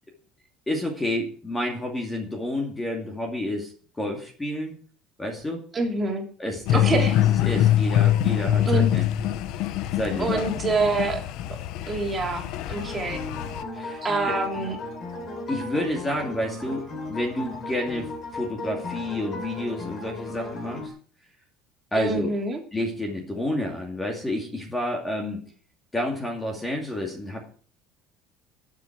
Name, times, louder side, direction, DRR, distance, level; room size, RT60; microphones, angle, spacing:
voice 1, 0.7-4.8 5.2-5.6 6.4-9.1 9.9-10.4 13.7-14.4 15.5-20.9 21.9-22.3 22.7-25.4 25.9-27.5, left 1 dB, 10° left, 1 dB, 2.4 m, -30 dB
voice 2, 5.7-6.2 6.7-7.1 8.6-8.9 10.2-11.2 11.9-13.2 14.0-14.8 21.9-22.6, right 3 dB, 20° right, 1 dB, 3.1 m, -26 dB
sound 1, 6.7-13.6, left 11 dB, 60° left, 1.0 m, -24 dB
sound 2, 12.7-20.9, left 2 dB, 30° left, 3.8 m, -36 dB
21.0 x 7.6 x 4.7 m, 0.43 s
cardioid pair, 160°, 0 cm